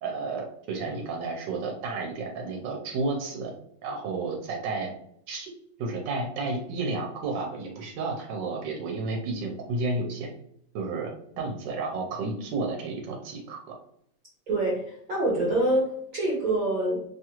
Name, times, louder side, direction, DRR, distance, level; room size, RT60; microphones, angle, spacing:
voice 1, 0.0-3.5 3.8-4.9 5.3-5.5 5.8-10.3 10.7-13.7, right 3 dB, 85° right, 0 dB, 1.3 m, -32 dB
voice 2, 14.5-17.0, right 1 dB, 60° right, -5 dB, 1.0 m, -26 dB
3.0 x 2.4 x 2.9 m, 0.68 s
omnidirectional pair, 1.9 m